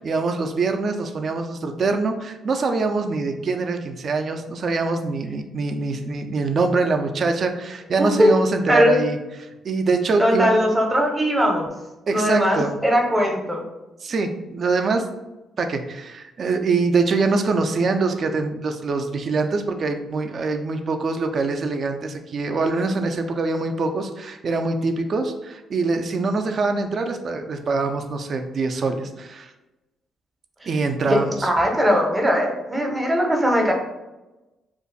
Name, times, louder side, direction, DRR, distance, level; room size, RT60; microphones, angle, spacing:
voice 1, 0.0-10.5 12.1-12.8 14.0-15.1 15.6-29.5 30.7-31.5, right 3 dB, 50° right, 6 dB, 0.4 m, -24 dB
voice 2, 8.0-8.3 8.7-9.0 10.2-11.7 12.1-13.6 30.6-30.8 31.1-33.7, equal, 15° right, 1 dB, 0.7 m, -20 dB
2.5 x 2.3 x 3.9 m, 1.0 s
cardioid pair, 90°, 0 cm